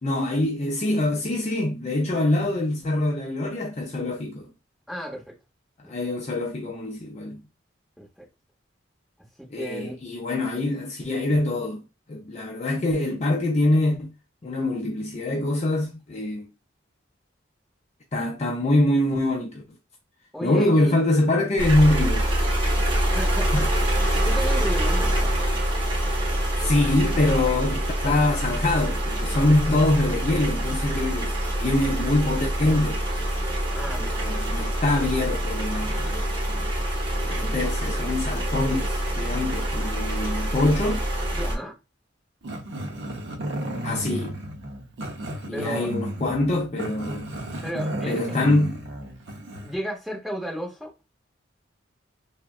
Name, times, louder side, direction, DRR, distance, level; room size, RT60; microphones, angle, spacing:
voice 1, 0.0-4.4 5.9-7.4 9.5-11.8 12.1-14.1 14.4-16.5 18.1-19.6 20.4-22.3 23.5-23.7 26.6-33.0 34.0-36.7 37.2-41.0 43.8-44.4 45.4-47.3 48.1-48.9, left 1 dB, 35° left, 0.4 m, -24 dB
voice 2, 4.9-5.3 5.8-5.9 8.0-8.3 9.4-10.0 20.3-21.0 23.1-23.7 24.1-25.4 33.7-34.3 41.3-41.7 45.5-45.9 47.6-48.2 49.6-50.9, right 1 dB, ahead, 0.9 m, -34 dB
sound 1, 21.6-41.6, right 1 dB, 25° right, 1.1 m, -25 dB
Growling, 42.4-49.8, right 1 dB, 70° right, 0.6 m, -33 dB
3.4 x 2.1 x 2.4 m
head